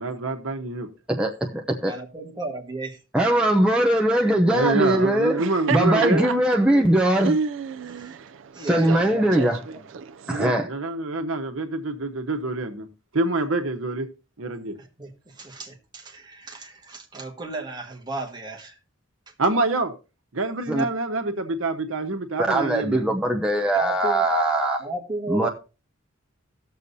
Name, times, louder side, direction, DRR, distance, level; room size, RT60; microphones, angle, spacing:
voice 1, 0.0-0.9 4.5-6.3 10.3-12.9 13.1-14.1 14.4-14.8 19.4-19.9 20.3-23.1, right 2 dB, 80° right, 1.1 m, -26 dB
voice 2, 1.1-1.9 3.1-5.4 5.7-7.4 8.6-9.6 10.3-10.7 20.7-20.8 22.5-24.8 25.3-25.5, right 1 dB, 5° right, 0.6 m, -21 dB
voice 3, 1.8-3.0 7.8-8.2 8.5-9.5 14.8-18.8 23.7-24.3 24.8-25.5, right 2 dB, 20° right, 1.5 m, -34 dB
Laughter, 5.2-10.5, right 5 dB, 65° right, 0.4 m, -31 dB
18.0 x 6.8 x 2.7 m
head